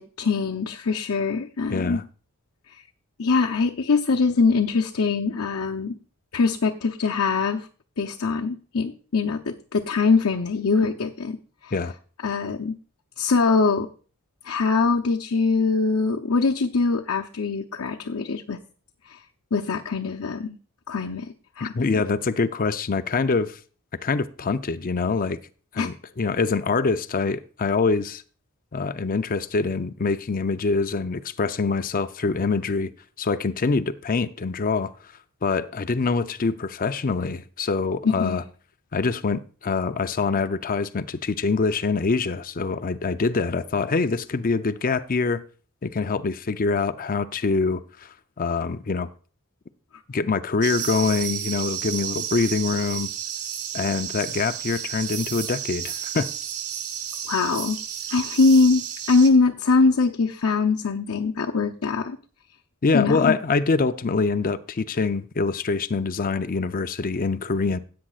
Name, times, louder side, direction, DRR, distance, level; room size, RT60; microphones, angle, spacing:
voice 1, 0.0-2.0 3.2-6.0 6.3-7.7 8.0-11.4 11.6-11.7 12.2-12.8 13.2-13.9 14.4-18.6 19.1-19.2 19.5-20.6 20.9-21.7 25.8-25.9 38.0-38.4 57.3-57.8 58.1-58.8 59.1-62.2 62.9-63.3, left 4 dB, 75° left, 0.7 m, -22 dB
voice 2, 1.7-2.0 11.7-11.9 21.6-23.6 24.0-25.4 25.7-28.2 28.7-32.9 33.2-34.9 35.4-38.4 38.9-45.4 45.8-49.1 50.1-53.1 53.7-56.3 62.8-67.8, left 4 dB, 40° left, 0.5 m, -25 dB
sound 1, 50.6-59.3, right 9 dB, 80° right, 1.3 m, -32 dB
16.0 x 8.6 x 2.4 m
head